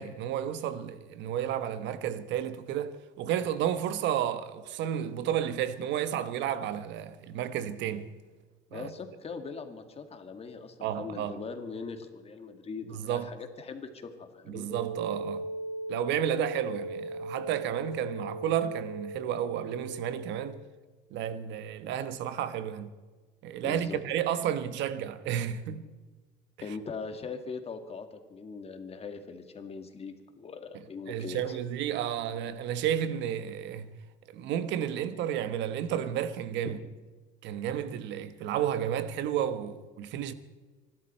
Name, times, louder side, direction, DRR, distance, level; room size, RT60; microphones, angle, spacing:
voice 1, 0.0-8.1 8.7-8.9 10.8-11.4 12.9-13.3 14.5-15.5 15.9-20.6 21.1-23.0 23.4-25.8 31.1-33.9 34.3-36.8 37.4-40.3, right 10 dB, 75° right, 1.2 m, -32 dB
voice 2, 8.7-14.7 23.6-24.0 26.6-31.6 36.6-36.9, left 5 dB, 35° left, 2.1 m, -41 dB
sound 1, 14.7-20.4, right 2 dB, 15° right, 5.4 m, -38 dB
25.5 x 12.5 x 4.4 m
cardioid pair, 110°, 19 cm